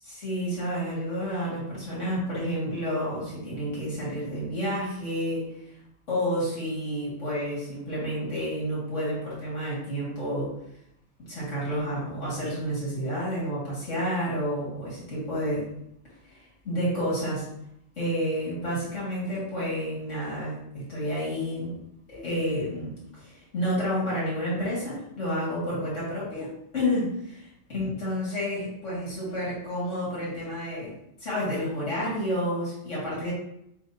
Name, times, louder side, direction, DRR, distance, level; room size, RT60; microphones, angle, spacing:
voice 1, 0.0-5.5 6.1-10.5 11.3-15.7 16.2-17.5 18.0-21.8 22.1-30.9 31.2-33.3, equal, 85° left, -8 dB, 2.4 m, -30 dB
4.6 x 4.2 x 2.7 m, 0.78 s
omnidirectional pair, 1.2 m